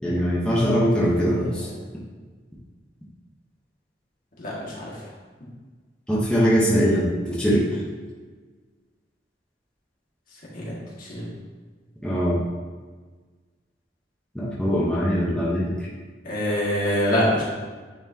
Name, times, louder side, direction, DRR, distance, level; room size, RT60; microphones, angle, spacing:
voice 1, 0.0-1.7 6.1-7.7 12.0-12.4 14.3-15.7, equal, 5° left, -8 dB, 1.0 m, -21 dB
voice 2, 1.0-1.7 4.4-5.0 10.5-11.3 16.2-17.4, equal, 50° left, -6 dB, 1.9 m, -26 dB
9.2 x 4.4 x 2.8 m, 1.4 s
head